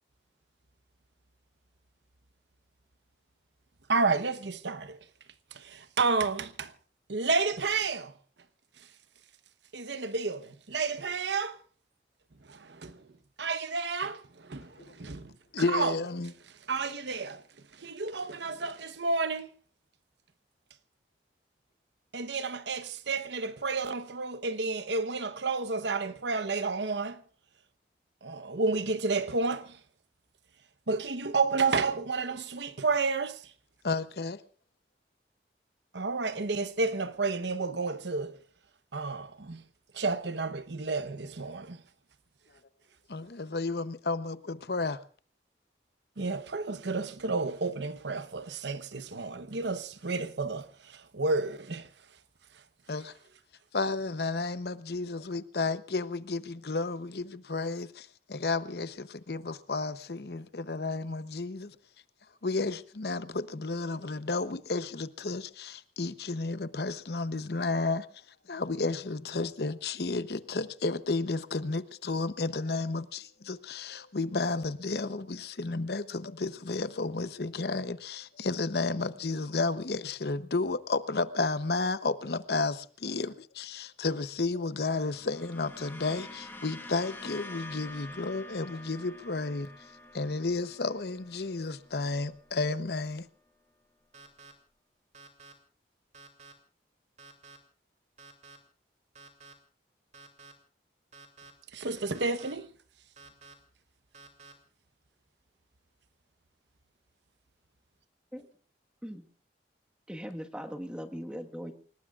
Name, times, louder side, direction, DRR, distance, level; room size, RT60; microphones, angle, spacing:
voice 1, 3.9-5.0 5.5-6.7 7.1-8.1 9.7-11.6 12.5-13.1 13.4-15.3 15.7-15.9 16.7-17.4 17.7-19.5 22.1-27.2 28.2-29.8 30.9-33.4 35.9-38.4 38.9-39.6 39.9-41.8 46.2-51.9 101.7-102.7, right 4 dB, 85° right, 1.0 m, -31 dB
voice 2, 15.5-16.3 33.8-34.4 43.1-45.0 52.9-53.1 53.7-61.8 62.4-68.2 68.5-89.7 90.1-93.3, left 3 dB, 65° left, 0.8 m, -32 dB
sound 1, 84.8-93.3, left 2 dB, 15° left, 1.3 m, -48 dB
sound 2, 94.1-94.5 95.1-95.5 96.1-96.5 97.2-97.6 98.2-98.6 99.1-99.5 100.1-100.5 101.1-101.5 102.1-102.5 103.2-103.5 104.1-104.5, right 3 dB, 40° right, 2.7 m, -51 dB
voice 3, 110.1-111.7, equal, 5° right, 1.5 m, -39 dB
29.0 x 18.5 x 2.4 m
head